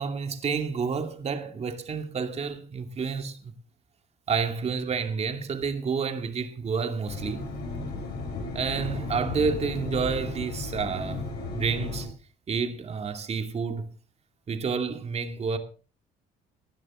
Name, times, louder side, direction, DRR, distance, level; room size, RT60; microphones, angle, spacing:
voice 1, 0.0-3.5 4.3-7.5 8.5-11.2 11.5-12.1 12.5-13.9 14.5-15.6, right 5 dB, 40° right, 2.5 m, -29 dB
sound 1, 7.1-12.0, left 3 dB, 75° left, 6.4 m, -34 dB
19.0 x 12.0 x 3.7 m
cardioid pair, 110°, 17 cm